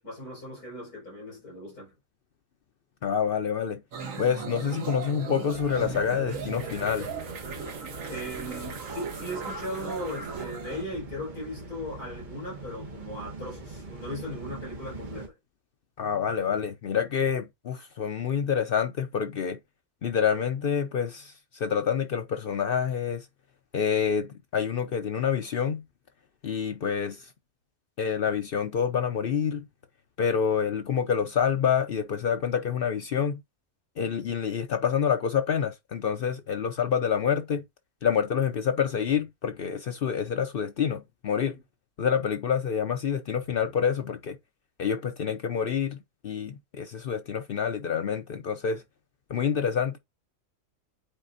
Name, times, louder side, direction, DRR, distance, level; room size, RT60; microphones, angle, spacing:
voice 1, 0.0-1.9 8.1-15.4, left 1 dB, 80° left, 5.6 m, -38 dB
voice 2, 3.0-3.8 4.2-7.1 16.0-19.6 20.0-23.3 23.7-25.8 26.4-27.3 28.0-29.7 30.2-33.4 34.0-37.6 38.0-41.6 42.0-44.4 44.8-46.0 46.2-48.8 49.3-50.0, left 7 dB, 60° left, 0.6 m, -27 dB
sound 1, 3.9-10.8, right 5 dB, 65° right, 1.5 m, -37 dB
sound 2, 5.5-15.3, right 3 dB, 35° right, 1.2 m, -42 dB
8.9 x 4.2 x 2.5 m
omnidirectional pair, 1.6 m